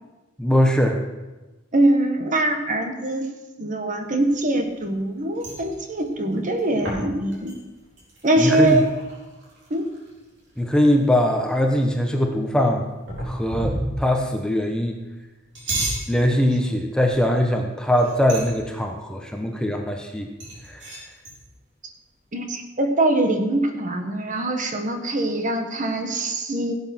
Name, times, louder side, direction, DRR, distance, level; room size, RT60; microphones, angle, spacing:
voice 1, 0.4-1.0 8.4-8.8 10.6-12.8 13.2-15.0 16.1-20.3 20.7-20.8, left 1 dB, 5° left, 2 dB, 1.0 m, -21 dB
voice 2, 1.7-3.3 3.6-7.5 8.2-8.9 9.7-9.9 22.3-26.7, right 1 dB, 40° right, 5 dB, 1.4 m, -23 dB
sound 1, 4.2-5.1 5.3-10.2 10.6-10.7 10.9-11.6 13.1-14.2 15.3-16.1 17.1-17.4 17.8-18.7 20.4-21.4, right 1 dB, 60° right, 4.5 m, -32 dB
16.5 x 7.9 x 6.0 m, 1.1 s
head